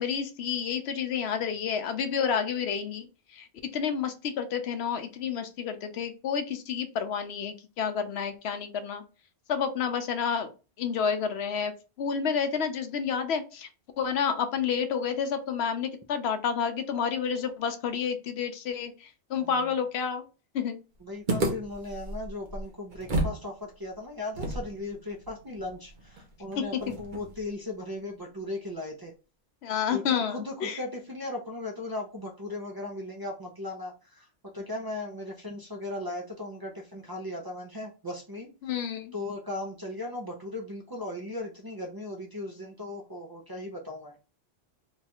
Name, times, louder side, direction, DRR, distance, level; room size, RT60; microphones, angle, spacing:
voice 1, 0.0-3.1 3.3-3.5 3.7-9.0 9.5-10.5 10.8-13.7 14.0-20.2 20.5-20.8 26.6-26.9 29.6-30.8 38.6-39.1, left 7 dB, 80° left, 8 dB, 0.9 m, -30 dB
voice 2, 19.4-19.7 21.0-29.1 29.9-38.5 39.1-44.1, left 2 dB, 25° right, -2 dB, 0.5 m, -37 dB
sound 1, 21.3-23.4 23.7-23.8 24.3-27.5, right 1 dB, 50° right, 0.9 m, -33 dB
3.0 x 2.4 x 4.2 m, 0.32 s
omnidirectional pair, 1.1 m